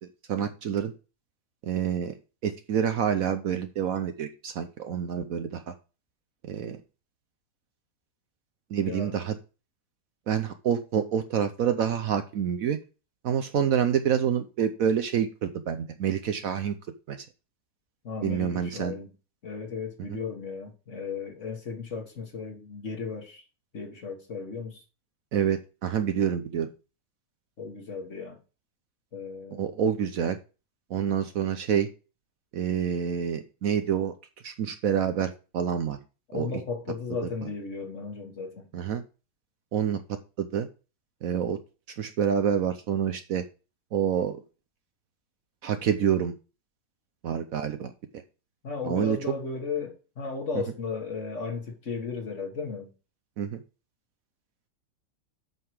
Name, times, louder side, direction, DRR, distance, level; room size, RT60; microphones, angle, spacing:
voice 1, 0.3-0.9 1.6-2.2 2.4-5.7 6.4-6.8 8.7-9.4 10.3-12.8 13.2-16.7 17.1-17.3 18.2-18.9 20.1-20.2 25.3-26.7 29.5-30.4 30.9-31.9 32.5-34.1 34.4-36.0 36.3-36.5 38.7-39.0 39.7-40.0 40.4-40.7 41.2-41.6 42.0-43.4 43.9-44.4 45.6-46.3 47.2-47.9 48.8-49.2 53.4-53.6, right 8 dB, 65° right, 1.0 m, -27 dB
voice 2, 18.0-19.1 19.4-23.4 23.7-24.8 27.6-28.4 29.1-29.8 36.3-38.7 48.6-52.9, left 4 dB, 45° left, 1.9 m, -35 dB
7.9 x 5.7 x 4.7 m
omnidirectional pair, 1.8 m